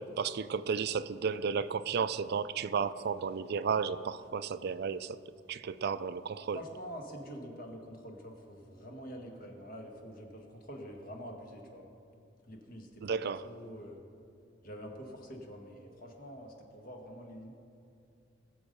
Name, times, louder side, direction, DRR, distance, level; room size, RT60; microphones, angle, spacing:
voice 1, 0.0-5.2 5.5-6.6 13.0-13.4, right 6 dB, 55° right, 0.4 m, -33 dB
voice 2, 6.5-11.9 12.4-14.0 14.6-17.5, equal, 50° left, 1.9 m, -46 dB
20.0 x 7.3 x 5.4 m
head